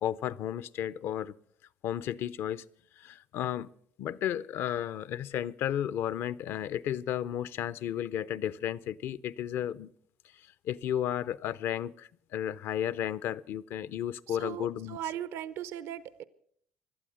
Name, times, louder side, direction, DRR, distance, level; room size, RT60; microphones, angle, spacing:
voice 1, 0.0-1.3 1.8-2.6 3.0-3.7 4.0-9.9 10.6-15.0, left 10 dB, 65° left, 0.6 m, -33 dB
voice 2, 14.3-16.2, right 11 dB, 75° right, 0.7 m, -38 dB
17.5 x 12.0 x 6.4 m
supercardioid pair, 85°, 4 cm